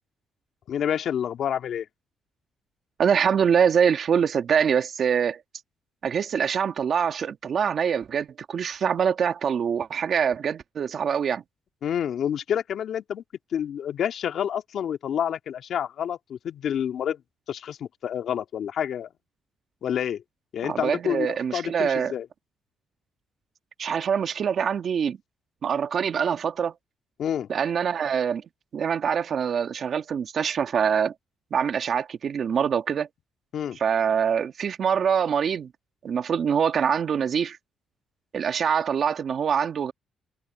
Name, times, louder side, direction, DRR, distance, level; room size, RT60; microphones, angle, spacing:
voice 1, 0.7-1.9 11.8-13.2 13.5-17.2 17.5-19.1 19.8-20.2 20.5-22.3 27.2-27.5 33.5-33.8, left 9 dB, 65° left, 2.1 m, -28 dB
voice 2, 3.0-5.4 6.0-11.4 20.6-22.1 23.8-25.2 25.6-26.7 27.5-28.4 28.7-31.1 31.5-33.1 33.8-35.7 36.0-37.6 38.3-39.9, right 7 dB, 55° right, 1.7 m, -24 dB
cardioid pair, 90°, 0 cm